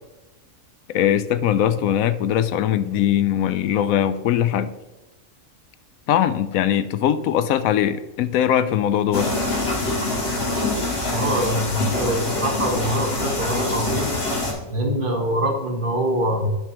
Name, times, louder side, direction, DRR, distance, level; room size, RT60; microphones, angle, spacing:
voice 1, 0.9-4.7 6.1-9.3, left 10 dB, 80° left, 13 dB, 1.0 m, -21 dB
sound 1, 9.1-14.5, left 2 dB, 45° left, 2.2 m, -25 dB
voice 2, 11.1-14.1 14.7-16.5, equal, 40° right, 2 dB, 1.3 m, -24 dB
10.5 x 5.9 x 3.0 m, 1.1 s
omnidirectional pair, 1.4 m